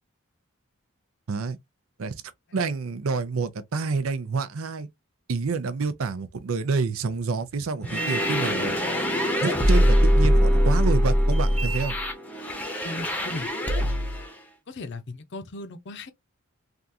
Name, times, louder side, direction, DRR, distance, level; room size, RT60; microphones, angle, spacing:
voice 1, 2.5-4.9 5.3-8.7 9.4-12.0, right 4 dB, 75° right, 0.5 m, -28 dB
sound 1, 7.8-14.3, equal, 10° left, 0.8 m, -22 dB
voice 2, 12.8-13.5 14.7-16.1, left 2 dB, 55° left, 0.6 m, -37 dB
3.5 x 2.5 x 2.6 m
head